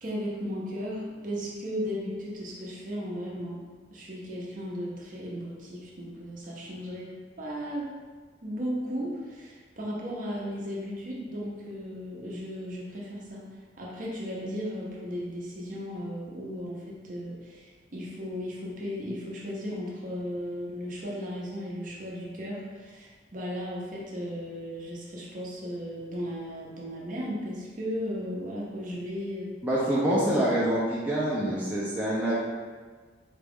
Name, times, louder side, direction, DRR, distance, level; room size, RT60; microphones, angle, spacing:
voice 1, 0.0-3.6 3.9-7.1 7.4-7.9 8.4-13.4 13.8-29.5, equal, 45° right, -4 dB, 0.7 m, -35 dB
voice 2, 29.6-32.4, right 1 dB, 10° right, -8 dB, 0.5 m, -26 dB
4.2 x 2.4 x 3.5 m, 1.5 s
head